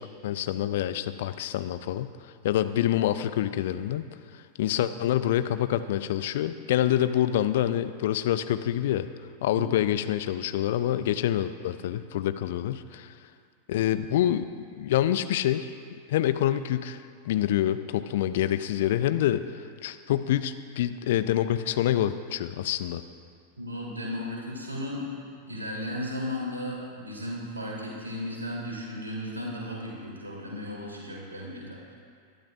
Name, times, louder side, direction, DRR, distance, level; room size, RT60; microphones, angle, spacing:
voice 1, 0.0-2.1 2.4-4.1 4.6-9.1 9.4-13.1 13.7-14.4 14.8-15.7 16.1-23.0, left 12 dB, 55° left, 12 dB, 0.5 m, -26 dB
voice 2, 23.6-25.1 25.4-31.9, left 1 dB, 80° right, -3 dB, 3.2 m, -35 dB
20.5 x 12.0 x 2.5 m, 2.2 s
figure-of-eight pair, 90°, 0 cm